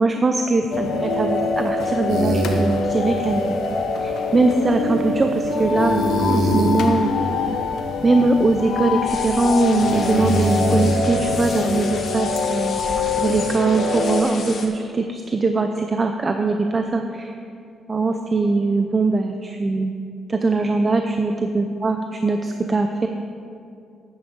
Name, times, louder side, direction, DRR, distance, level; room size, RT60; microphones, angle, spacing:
voice 1, 0.0-3.6 4.0-7.1 8.0-12.8 13.2-17.3 17.9-19.9 20.3-23.1, right 3 dB, 30° right, 5 dB, 0.6 m, -21 dB
sound 1, 0.7-14.2, left 4 dB, 70° left, 0.9 m, -24 dB
sound 2, 2.1-13.5, right 1 dB, 80° right, 1.6 m, -27 dB
sound 3, 9.0-14.7, left 4 dB, 55° left, 1.6 m, -35 dB
9.8 x 9.4 x 5.2 m, 2.4 s
cardioid pair, 90°, 0 cm